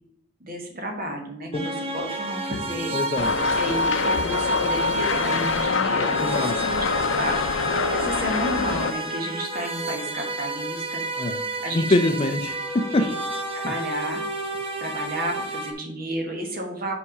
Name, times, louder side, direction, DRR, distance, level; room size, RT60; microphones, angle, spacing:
voice 1, 0.4-3.0 3.5-6.8 7.2-11.3 11.6-12.2 13.0-13.1 13.5-14.2 14.8-16.9, equal, 45° right, 3 dB, 1.5 m, -32 dB
sound 1, 1.5-15.7, right 1 dB, 30° right, 1.0 m, -29 dB
voice 2, 2.9-3.3 6.2-6.5 11.2-11.4 11.7-13.1 13.6-13.7, left 2 dB, 30° left, 7 dB, 0.4 m, -24 dB
sound 2, 3.2-8.9, left 6 dB, 80° left, 0.5 m, -26 dB
5.7 x 4.7 x 5.3 m, 0.77 s
head